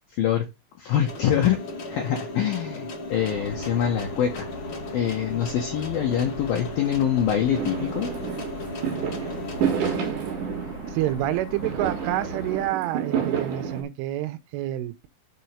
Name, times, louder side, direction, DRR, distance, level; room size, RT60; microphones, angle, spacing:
voice 1, 0.1-0.5 0.8-1.6 1.9-4.5 4.9-8.1, left 9 dB, 80° left, 2.1 m, -24 dB
sound 1, 1.1-10.1, left 2 dB, 45° left, 1.8 m, -36 dB
sound 2, 3.1-12.7, left 3 dB, 60° left, 1.5 m, -41 dB
Fireworks, 7.6-13.8, right 8 dB, 60° right, 2.4 m, -29 dB
voice 2, 10.9-15.1, right 14 dB, 80° right, 3.1 m, -28 dB
6.9 x 4.5 x 6.9 m
omnidirectional pair, 5.9 m